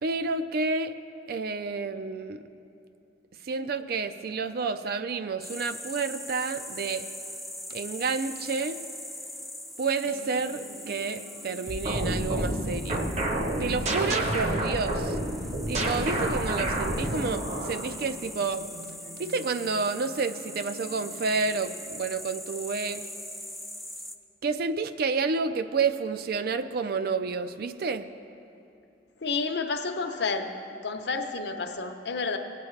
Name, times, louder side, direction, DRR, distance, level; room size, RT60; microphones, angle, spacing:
voice 1, 0.0-1.0 1.3-2.4 3.5-7.1 7.7-8.8 9.8-13.1 13.6-15.2 15.7-18.7 19.2-23.0 24.4-28.1, right 4 dB, 60° right, 12 dB, 0.4 m, -30 dB
sound 1, 5.4-24.2, left 1 dB, ahead, 0.4 m, -42 dB
sound 2, 10.0-21.6, right 1 dB, 90° right, 0.9 m, -49 dB
sound 3, 11.7-17.9, right 1 dB, 40° right, 0.9 m, -29 dB
voice 2, 29.2-30.5 30.8-32.4, left 4 dB, 65° left, 6 dB, 0.8 m, -30 dB
18.0 x 8.4 x 3.2 m, 2.8 s
head